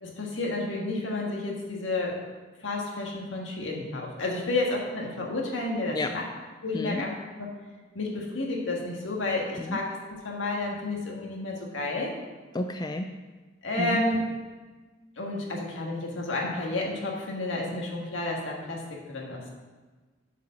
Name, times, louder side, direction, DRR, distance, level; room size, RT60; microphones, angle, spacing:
voice 1, 0.0-2.2 2.6-6.2 6.6-7.1 7.4-7.6 7.9-12.1 13.6-14.2 15.2-19.5, left 2 dB, 70° left, -1 dB, 1.8 m, -31 dB
voice 2, 6.7-7.0 9.6-9.8 12.5-13.1 13.8-14.0, left 2 dB, 20° left, 6 dB, 0.3 m, -30 dB
8.1 x 4.9 x 6.4 m, 1.3 s
head